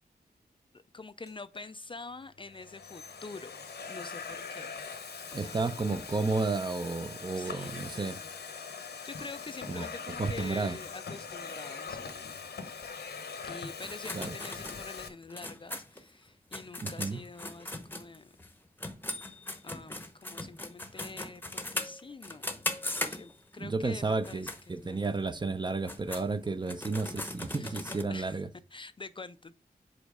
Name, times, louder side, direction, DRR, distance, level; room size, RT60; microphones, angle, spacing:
voice 1, 0.7-4.7 5.3-6.0 7.3-8.3 8.8-12.3 13.4-18.3 19.6-22.5 22.8-25.0 27.5-27.8 28.1-28.4 28.7-29.6, left 3 dB, 30° left, 0.3 m, -46 dB
Domestic sounds home sounds, 1.3-1.6 2.4-15.1, left 5 dB, 90° left, 0.9 m, -42 dB
voice 2, 5.3-8.2 9.7-9.9 10.2-10.8 14.1-14.3 16.8-17.2 23.6-28.5, right 3 dB, 30° right, 0.5 m, -32 dB
sound 1, 13.8-18.5 18.8-23.6 24.1-24.6 25.0-25.1 25.7-28.0, left 2 dB, 10° left, 0.8 m, -39 dB
5.1 x 4.4 x 4.8 m
wide cardioid pair, 105°, 17 cm